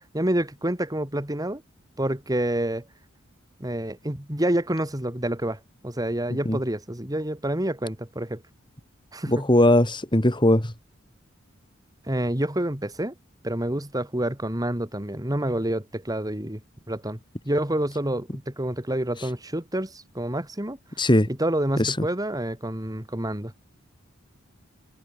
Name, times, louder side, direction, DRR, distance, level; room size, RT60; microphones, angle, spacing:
voice 1, 0.1-1.6 2.0-2.8 3.6-8.4 9.1-9.5 12.1-13.1 13.4-16.6 16.9-17.2 17.4-20.8 21.3-23.5, right 1 dB, 20° right, 2.7 m, -28 dB
voice 2, 9.3-10.7 21.0-21.3 21.8-22.1, left 1 dB, 25° left, 2.9 m, -19 dB
head